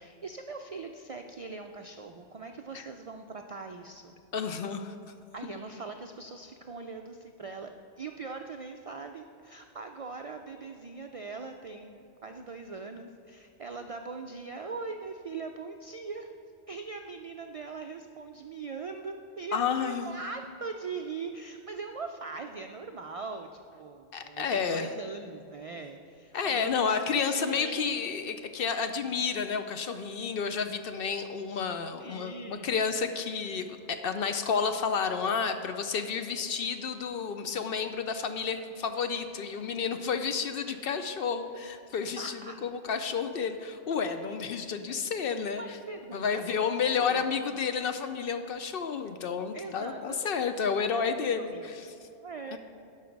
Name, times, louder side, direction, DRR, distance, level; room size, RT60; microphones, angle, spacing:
voice 1, 0.0-4.1 5.3-16.3 16.7-27.9 32.0-32.8 42.2-42.6 45.6-47.2 49.5-51.2 51.5-51.7 52.2-52.6, right 4 dB, 65° right, 5 dB, 0.3 m, -41 dB
voice 2, 4.3-4.9 19.5-20.1 24.1-24.9 26.3-45.8 46.1-51.9 52.5-52.6, left 6 dB, 60° left, 8 dB, 0.7 m, -31 dB
12.0 x 5.6 x 5.2 m, 2.7 s
omnidirectional pair, 1.2 m